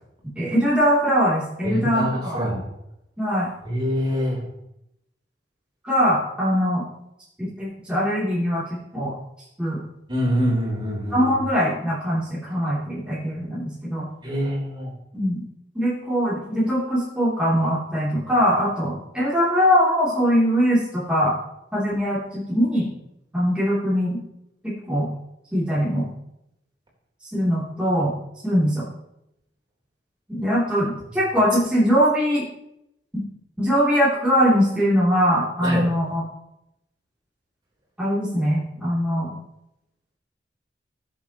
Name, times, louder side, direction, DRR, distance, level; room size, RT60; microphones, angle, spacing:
voice 1, 0.3-2.4 3.2-3.5 5.8-6.8 7.4-8.6 8.9-9.1 9.6-9.8 11.1-14.1 15.1-15.4 15.7-21.3 21.7-22.9 23.3-24.2 24.6-25.1 25.5-26.1 27.3-28.1 28.4-28.9 30.3-32.4 33.6-36.2 38.0-39.3, equal, 5° right, -10 dB, 3.1 m, -21 dB
voice 2, 1.6-2.6 3.6-4.4 10.1-11.3 14.2-14.9 35.6-35.8, equal, 25° right, -4 dB, 3.9 m, -25 dB
19.5 x 7.3 x 3.0 m, 0.84 s
head